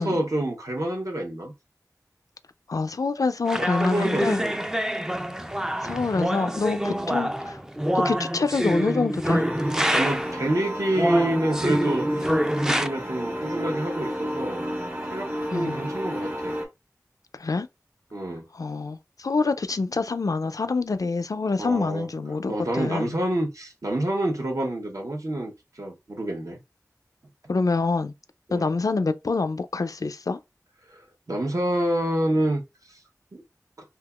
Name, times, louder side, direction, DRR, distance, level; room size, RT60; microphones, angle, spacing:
voice 1, 0.0-1.5 3.6-4.6 6.8-7.1 9.9-12.3 12.6-14.7 15.1-16.6 18.1-18.4 21.6-22.1 22.5-26.6 28.5-28.7 30.9-31.0 31.3-32.6 32.9-33.0 33.3-33.4, right 1 dB, 65° right, 0.8 m, -28 dB
voice 2, 2.7-4.4 5.8-7.6 7.9-9.4 15.5-15.8 17.3-17.7 18.5-23.2 27.5-28.1 28.5-30.4, left 4 dB, 70° left, 0.3 m, -26 dB
sound 1, 3.5-10.4 10.9-12.9, equal, 10° right, 0.3 m, -26 dB
sound 2, 9.2-16.6, equal, 35° right, 1.2 m, -32 dB
3.5 x 2.8 x 2.3 m
wide cardioid pair, 40°, 6 cm